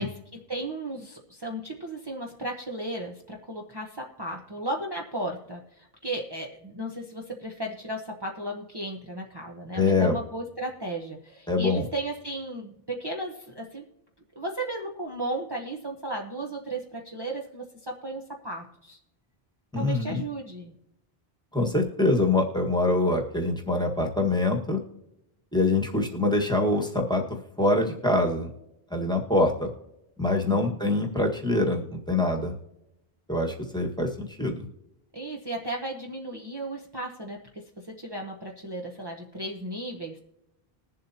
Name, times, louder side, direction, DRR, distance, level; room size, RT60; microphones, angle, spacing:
voice 1, 0.0-13.8 14.3-19.0 19.7-20.7 30.4-30.8 35.1-40.2, right 1 dB, 25° right, -2 dB, 1.0 m, -35 dB
voice 2, 9.7-10.2 11.5-11.8 19.7-20.2 21.5-24.8 25.5-27.2 27.6-28.5 28.9-29.7 30.2-32.5 33.3-34.7, left 2 dB, 5° left, 1 dB, 1.5 m, -24 dB
21.0 x 7.5 x 2.8 m, 0.86 s
omnidirectional pair, 1.0 m